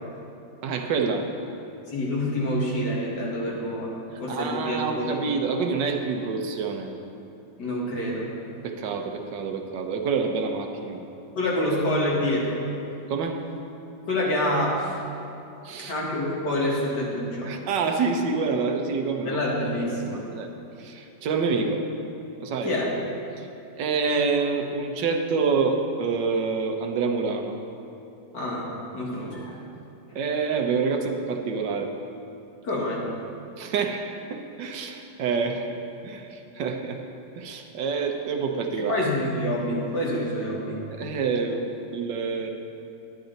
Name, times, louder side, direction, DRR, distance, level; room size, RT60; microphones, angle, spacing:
voice 1, 0.6-1.3 4.3-6.9 8.6-11.0 13.1-13.4 15.6-15.9 17.4-19.4 19.9-20.0 20.3-20.5 20.8-21.9 22.4-22.7 23.4-23.5 23.8-27.5 30.1-31.9 33.6-37.0 37.3-39.1 40.9-42.5, right 5 dB, 75° right, 4 dB, 1.4 m, -27 dB
voice 2, 1.9-5.2 7.6-8.3 11.4-12.6 14.1-15.0 15.8-17.5 19.2-20.2 22.6-22.9 28.3-29.6 32.6-33.1 38.9-40.8, left 1 dB, 65° left, -4 dB, 2.4 m, -27 dB
10.5 x 10.0 x 4.0 m, 2.8 s
omnidirectional pair, 2.0 m